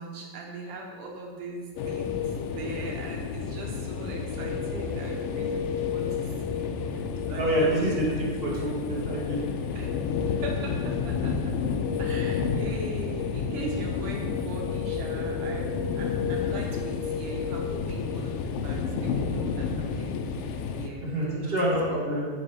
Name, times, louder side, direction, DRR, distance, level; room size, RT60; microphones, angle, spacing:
voice 1, 0.0-8.2 8.6-8.9 9.8-10.0 10.2-11.5 12.0-20.1 20.8-21.6 21.9-22.0, right 2 dB, 70° right, 0 dB, 2.5 m, -39 dB
sound 1, 1.8-20.9, left 6 dB, 90° left, 2.5 m, -30 dB
voice 2, 7.3-9.4 21.0-22.2, right 1 dB, 30° right, -5 dB, 1.2 m, -27 dB
10.0 x 5.3 x 5.7 m, 1.5 s
omnidirectional pair, 4.0 m